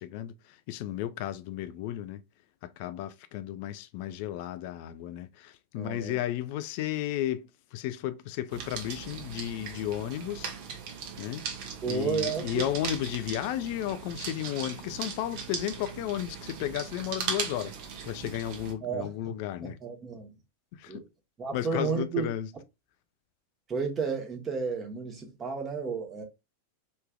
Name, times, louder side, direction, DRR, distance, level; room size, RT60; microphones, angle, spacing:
voice 1, 0.0-2.2 2.6-10.5 11.2-11.4 11.9-17.7 18.0-19.8 20.7-21.0 21.5-22.5, left 12 dB, 45° left, 0.4 m, -34 dB
voice 2, 5.8-6.2 11.8-12.6 18.8-20.3 20.9-21.0 21.4-22.3 23.7-26.2, right 5 dB, 25° right, 1.1 m, -32 dB
sound 1, 8.5-18.7, right 6 dB, 45° right, 0.9 m, -38 dB
3.3 x 3.1 x 2.3 m
figure-of-eight pair, 90°, 0 cm